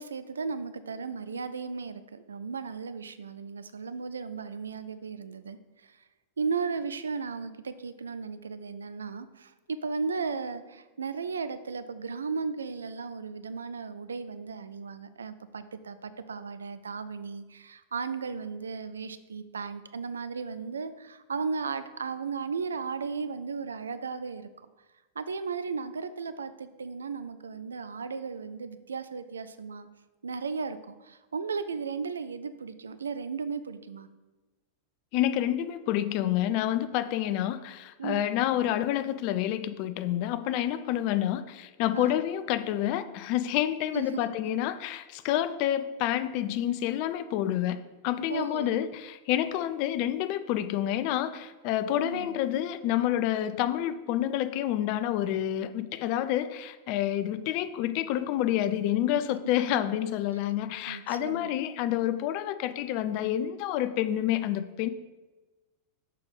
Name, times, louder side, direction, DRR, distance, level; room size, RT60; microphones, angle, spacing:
voice 1, 0.0-6.0 6.4-24.5 25.2-29.9 30.2-34.1 38.0-38.3 41.9-42.2 43.9-44.2 48.3-48.8 52.0-52.4 60.3-60.5 60.9-61.5, right 5 dB, 70° right, 12 dB, 0.4 m, -35 dB
voice 2, 35.1-47.8 48.0-64.9, left 12 dB, 45° left, 12 dB, 0.4 m, -28 dB
6.5 x 5.1 x 4.0 m, 1.2 s
figure-of-eight pair, 90°, 0 cm